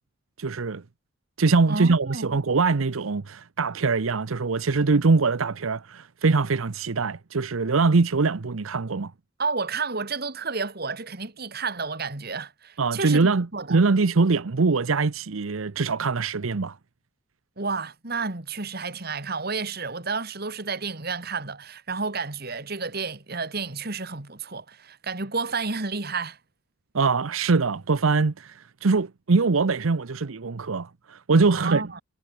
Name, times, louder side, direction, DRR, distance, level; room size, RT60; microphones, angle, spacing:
voice 1, 0.4-0.8 1.4-9.1 12.8-16.8 26.9-31.8, right 4 dB, 90° right, 0.8 m, -23 dB
voice 2, 1.7-2.3 9.4-13.8 17.6-26.4 31.5-32.0, right 4 dB, 50° right, 2.1 m, -31 dB
head